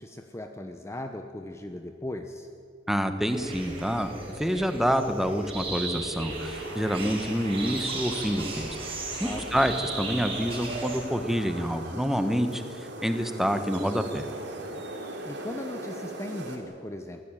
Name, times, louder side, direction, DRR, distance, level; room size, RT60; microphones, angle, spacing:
voice 1, 0.0-2.5 9.2-9.7 15.2-17.3, left 1 dB, 15° left, 6 dB, 0.9 m, -38 dB
voice 2, 2.9-8.8 9.2-14.2, equal, ahead, 8 dB, 1.3 m, -27 dB
sound 1, 3.3-11.0, right 3 dB, 30° right, 5.4 m, -36 dB
sound 2, 6.3-16.6, right 1 dB, 60° right, 3.4 m, -40 dB
23.0 x 15.5 x 9.1 m, 2.4 s
head